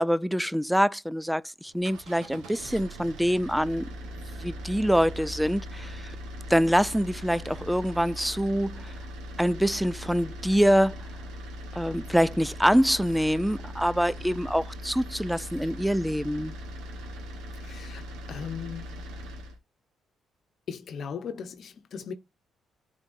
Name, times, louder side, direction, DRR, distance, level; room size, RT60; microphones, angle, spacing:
voice 1, 0.0-3.9 4.4-6.2 6.5-8.9 9.4-11.0 11.8-16.5, equal, ahead, 0.3 m, -25 dB
sound 1, 1.7-19.6, equal, 90° right, 1.3 m, -40 dB
voice 2, 17.6-19.1 20.7-22.1, left 7 dB, 60° left, 0.9 m, -38 dB
9.9 x 4.0 x 2.6 m
cardioid pair, 90°, 0 cm